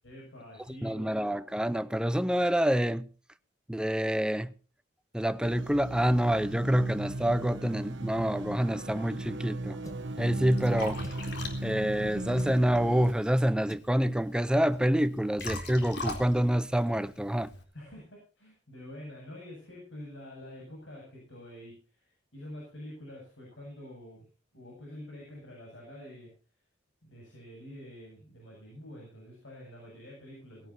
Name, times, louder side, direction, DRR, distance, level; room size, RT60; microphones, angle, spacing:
voice 1, 0.0-1.4 17.7-24.3 24.5-26.3 27.0-30.7, left 1 dB, 80° left, 7.9 m, -47 dB
voice 2, 0.8-3.1 3.7-4.5 5.1-9.8 10.2-11.0 11.6-17.5, equal, 5° right, 0.6 m, -27 dB
sound 1, 5.4-13.1, right 1 dB, 70° right, 1.2 m, -37 dB
sound 2, 9.8-10.2 11.0-11.4 12.3-12.6 13.7-14.0 14.7-14.9 15.2-15.3 15.7-15.9, left 1 dB, 20° left, 1.1 m, -48 dB
Liquid, 9.9-17.6, left 2 dB, 60° left, 3.9 m, -42 dB
19.5 x 17.0 x 2.8 m
head